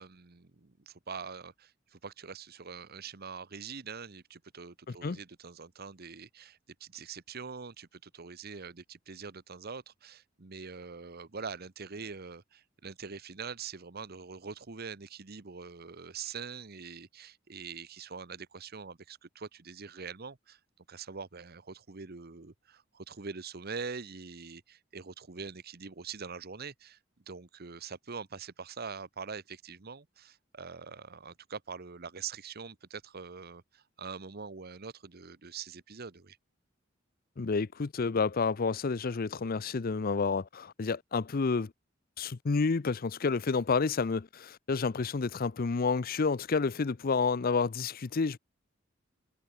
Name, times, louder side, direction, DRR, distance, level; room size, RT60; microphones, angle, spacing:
voice 1, 0.0-20.6 20.9-27.0 27.3-36.4, right 5 dB, 50° right, 1.1 m, -44 dB
voice 2, 4.9-5.2 37.4-41.7 42.2-48.4, left 4 dB, 50° left, 0.6 m, -30 dB
head